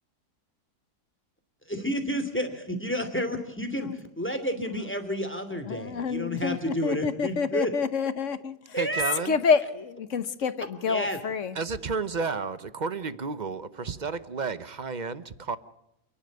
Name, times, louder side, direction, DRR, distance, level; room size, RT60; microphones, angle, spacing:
voice 1, 1.7-7.7 8.7-9.2 10.8-11.2, equal, 5° left, 2.7 m, -30 dB
voice 2, 5.7-8.5 9.3-11.5, left 5 dB, 55° left, 1.2 m, -28 dB
voice 3, 8.8-9.4 11.6-15.6, right 4 dB, 35° right, 0.8 m, -32 dB
28.5 x 11.5 x 9.4 m
omnidirectional pair, 1.7 m